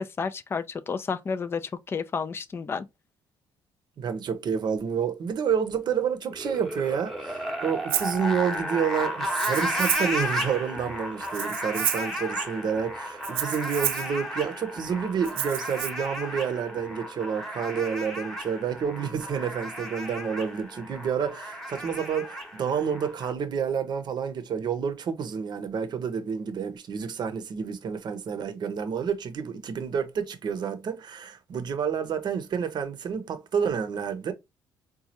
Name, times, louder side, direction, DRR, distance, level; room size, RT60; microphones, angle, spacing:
voice 1, 0.0-2.9, left 5 dB, 25° left, 0.4 m, -31 dB
voice 2, 4.0-34.3, right 7 dB, 50° right, 0.7 m, -29 dB
sound 1, 6.3-23.3, equal, ahead, 0.9 m, -33 dB
Rattle (instrument), 7.9-8.2 9.3-10.2 11.2-12.1 13.2-14.1 15.2-15.9, right 12 dB, 85° right, 0.4 m, -30 dB
4.1 x 2.3 x 2.8 m
cardioid pair, 90°, 9 cm